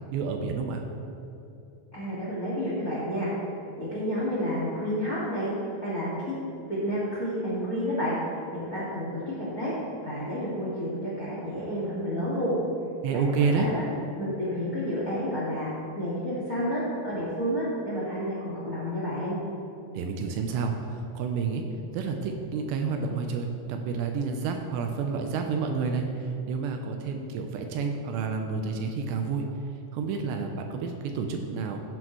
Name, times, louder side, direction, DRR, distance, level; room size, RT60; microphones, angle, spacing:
voice 1, 0.1-0.8 13.0-13.7 19.9-21.6 21.9-29.4 29.9-31.8, right 5 dB, 80° right, 4 dB, 2.7 m, -29 dB
voice 2, 1.9-3.3 3.8-5.5 5.8-6.3 6.7-8.2 8.5-9.7 10.0-12.6 13.1-13.8 14.2-19.4, equal, 60° left, -8 dB, 0.9 m, -30 dB
15.0 x 8.0 x 3.1 m, 2.8 s
omnidirectional pair, 5.3 m